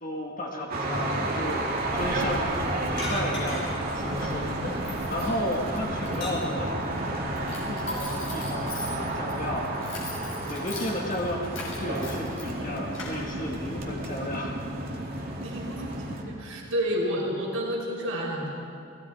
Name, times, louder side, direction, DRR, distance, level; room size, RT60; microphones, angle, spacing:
voice 1, 0.0-6.7 7.7-9.7 10.5-14.5 15.1-15.4, left 1 dB, 40° left, -1 dB, 1.7 m, -33 dB
sound 1, 0.7-16.2, right 1 dB, 45° right, 2.5 m, -31 dB
Keys jangling, 1.1-14.0, left 2 dB, 70° left, 6.3 m, -44 dB
sound 2, 3.0-3.9 4.2-5.2 5.6-6.7 7.9-8.0, left 1 dB, 55° left, 6.2 m, -36 dB
voice 2, 15.4-18.5, equal, 75° right, -2 dB, 4.9 m, -30 dB
30.0 x 18.0 x 4.8 m, 2.6 s
head